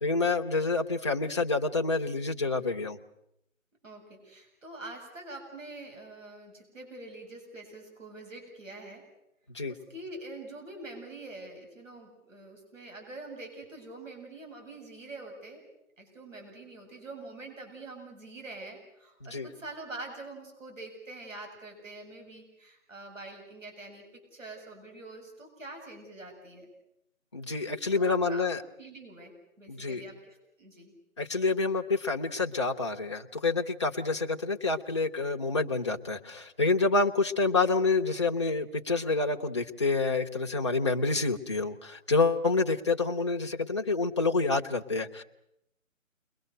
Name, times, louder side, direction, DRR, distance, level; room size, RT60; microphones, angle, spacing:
voice 1, 0.0-3.0 9.5-9.7 19.2-19.5 27.3-28.6 29.7-30.0 31.2-45.2, left 3 dB, 20° left, 2 dB, 0.9 m, -28 dB
voice 2, 3.8-9.0 9.7-15.6 16.0-26.7 27.9-28.5 28.8-30.9, right 2 dB, 70° right, 2 dB, 7.9 m, -45 dB
29.5 x 22.5 x 6.7 m, 0.79 s
figure-of-eight pair, 160°, 40 cm